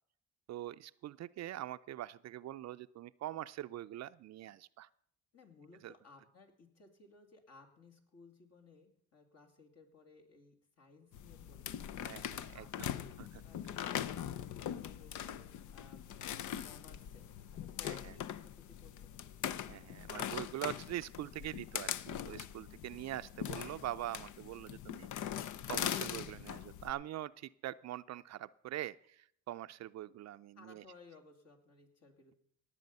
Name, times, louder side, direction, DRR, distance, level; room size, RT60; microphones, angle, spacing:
voice 1, 0.5-4.9 5.8-5.9 12.0-12.9 13.2-13.3 17.8-18.1 19.7-25.1 25.7-30.8, right 13 dB, 60° right, 12 dB, 0.4 m, -43 dB
voice 2, 5.3-13.2 13.4-17.3 17.5-19.1 30.5-32.3, left 4 dB, 55° left, 3 dB, 2.7 m, -60 dB
sound 1, 11.1-26.9, left 10 dB, 75° left, 0.7 m, -42 dB
18.5 x 7.7 x 5.4 m, 0.67 s
cardioid pair, 90°, 30 cm